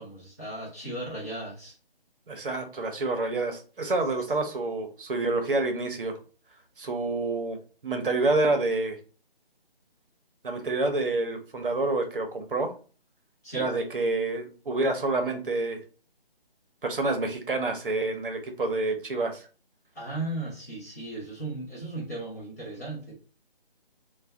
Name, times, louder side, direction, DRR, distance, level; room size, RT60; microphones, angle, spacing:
voice 1, 0.0-1.7 13.4-13.7 19.9-23.2, right 2 dB, 15° left, -6 dB, 0.6 m, -36 dB
voice 2, 2.3-6.2 6.8-7.6 7.8-9.0 10.4-12.7 13.5-15.8 16.8-19.4, right 2 dB, 65° right, 5 dB, 0.7 m, -28 dB
2.6 x 2.1 x 3.2 m, 0.37 s
figure-of-eight pair, 150°, 29 cm